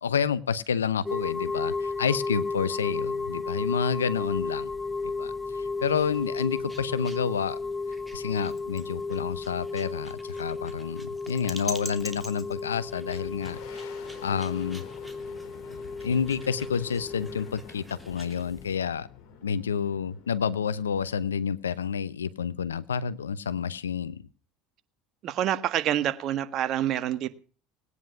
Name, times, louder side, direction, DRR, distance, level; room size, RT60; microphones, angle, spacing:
voice 1, 0.0-4.7 5.2-7.6 8.1-14.8 15.7-19.1 19.4-24.2, left 7 dB, 90° left, 0.8 m, -29 dB
sound 1, 1.0-18.8, left 3 dB, 15° left, 0.8 m, -34 dB
sound 2, 5.7-18.4, equal, ahead, 2.8 m, -46 dB
Boom, 12.6-22.0, left 8 dB, 60° left, 4.4 m, -48 dB
voice 2, 25.2-27.3, right 11 dB, 50° right, 1.6 m, -27 dB
19.0 x 9.7 x 5.8 m
hypercardioid pair, 75°, 0 cm